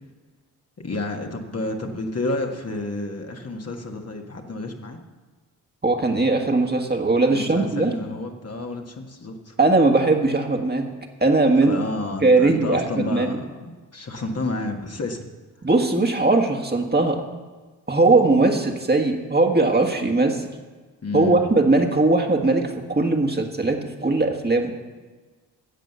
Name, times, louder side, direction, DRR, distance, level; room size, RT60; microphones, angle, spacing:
voice 1, 0.8-5.0 7.3-9.5 11.6-15.3 21.0-21.5, left 2 dB, 35° left, 2 dB, 1.7 m, -30 dB
voice 2, 5.8-7.9 9.6-10.9 11.2-11.8 12.2-13.3 15.6-17.2 17.9-20.5 21.1-24.7, right 2 dB, 25° right, 3 dB, 1.7 m, -19 dB
11.5 x 7.5 x 6.9 m, 1.3 s
supercardioid pair, 45°, 41 cm